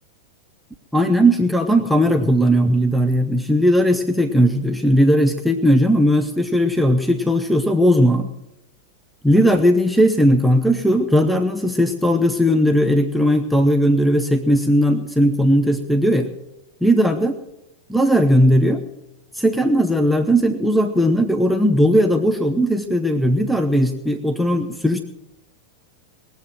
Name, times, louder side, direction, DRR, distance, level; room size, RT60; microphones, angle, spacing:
voice 1, 0.9-8.3 9.2-16.3 16.8-17.3 17.9-18.8 19.3-25.0, equal, ahead, 5 dB, 0.9 m, -17 dB
20.0 x 7.9 x 7.6 m, 0.91 s
figure-of-eight pair, 90°, 0 cm